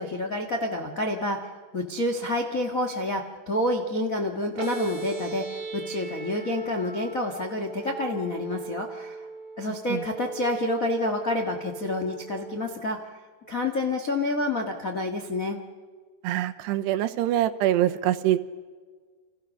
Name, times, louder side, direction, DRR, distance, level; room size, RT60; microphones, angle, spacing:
voice 1, 0.0-9.3 9.6-13.0 13.5-15.6, left 1 dB, 70° left, 3 dB, 0.7 m, -28 dB
sound 1, 4.6-12.6, right 4 dB, 45° right, 6.2 m, -38 dB
voice 2, 9.7-10.0 16.2-18.4, right 13 dB, 85° right, 10 dB, 3.2 m, -25 dB
30.0 x 27.5 x 6.5 m, 1.5 s
omnidirectional pair, 4.8 m